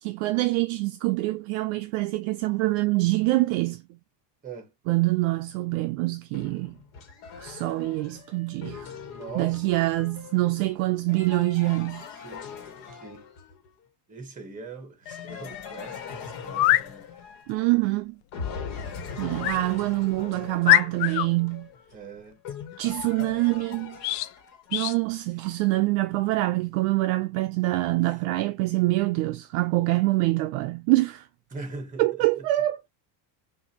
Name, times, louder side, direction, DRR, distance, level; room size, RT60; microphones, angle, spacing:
voice 1, 0.0-3.8 4.9-6.8 7.4-8.9 9.3-12.1 17.5-18.2 19.2-21.7 22.8-24.0 24.7-31.3 32.0-32.9, right 19 dB, 55° right, 0.5 m, -25 dB
sound 1, 6.3-13.7 15.1-17.9 18.3-24.8, left 6 dB, 50° left, 1.5 m, -41 dB
voice 2, 9.1-9.7 12.2-12.5 12.9-13.3 14.1-17.1 19.4-19.5 21.9-22.4 28.1-28.2 31.5-32.1, right 4 dB, 15° right, 1.3 m, -41 dB
sound 2, 16.5-16.9 19.4-19.6 20.1-20.2 20.6-21.3 24.0-24.3 24.7-25.0, left 15 dB, 80° left, 0.6 m, -22 dB
6.0 x 2.7 x 2.8 m
cardioid pair, 170°, 49 cm